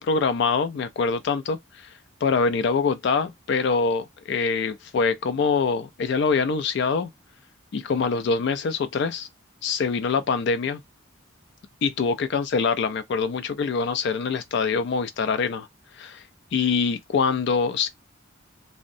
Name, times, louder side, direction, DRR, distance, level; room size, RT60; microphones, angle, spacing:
voice 1, 0.0-1.9 2.2-7.1 7.7-9.3 9.6-10.8 11.8-15.7 16.0-16.2 16.5-17.9, left 5 dB, 60° left, 0.3 m, -24 dB
2.6 x 2.0 x 2.5 m
head